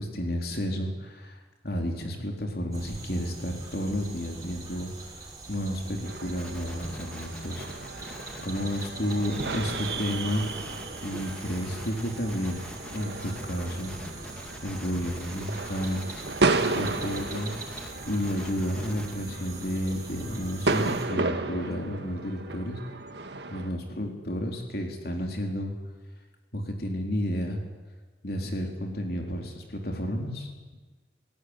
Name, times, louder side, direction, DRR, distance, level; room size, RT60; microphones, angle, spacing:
voice 1, 0.0-10.4 11.0-12.7 12.9-13.9 14.6-16.1 16.7-17.5 18.1-22.8 23.5-25.7 26.5-27.6 28.2-30.5, equal, 55° left, 2 dB, 3.8 m, -31 dB
sound 1, 2.7-21.1, right 2 dB, 20° right, 5.9 m, -43 dB
sound 2, 6.0-23.7, right 3 dB, 70° right, 1.8 m, -33 dB
sound 3, 6.4-19.2, left 1 dB, 5° left, 2.5 m, -46 dB
27.5 x 17.5 x 9.8 m, 1.3 s
head